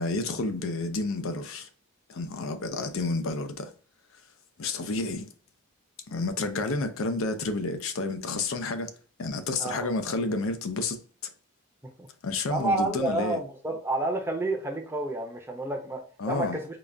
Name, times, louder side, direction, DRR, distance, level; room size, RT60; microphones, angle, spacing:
voice 1, 0.0-1.7 2.1-3.7 4.6-5.3 6.1-8.9 9.2-11.0 12.2-13.4 16.2-16.6, left 3 dB, 70° left, 0.5 m, -30 dB
voice 2, 9.6-9.9 12.0-12.1 12.5-16.8, right 2 dB, 10° right, 0.6 m, -30 dB
3.8 x 2.4 x 3.3 m
head